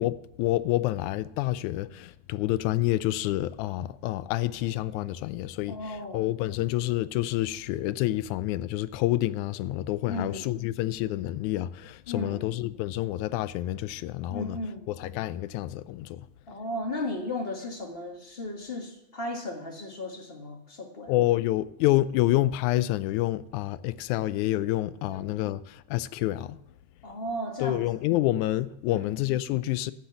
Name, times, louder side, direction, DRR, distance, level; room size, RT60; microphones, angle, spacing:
voice 1, 0.0-14.6 14.9-16.3 21.1-26.6 27.6-29.9, left 15 dB, 90° left, 2.0 m, -28 dB
voice 2, 5.7-6.3 10.0-10.5 12.1-12.4 14.3-14.9 16.5-21.1 25.0-25.4 27.0-27.8 28.9-29.1, left 1 dB, 30° left, 1.2 m, -35 dB
12.0 x 8.1 x 6.9 m
omnidirectional pair, 3.4 m